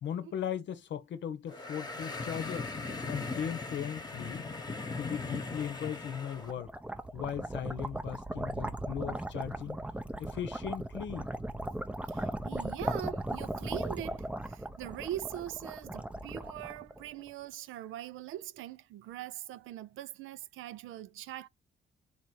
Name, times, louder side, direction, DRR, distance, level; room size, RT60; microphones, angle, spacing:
voice 1, 0.0-2.7 3.0-4.5 5.0-6.7 7.1-9.8 10.2-11.3, left 9 dB, 65° left, 0.8 m, -38 dB
sound 1, 1.5-6.5, left 3 dB, 20° left, 1.0 m, -39 dB
sound 2, 6.1-17.3, right 1 dB, 5° right, 0.6 m, -37 dB
voice 2, 12.1-21.5, right 13 dB, 85° right, 0.5 m, -42 dB
4.2 x 2.7 x 4.5 m
cardioid pair, 90°, 20 cm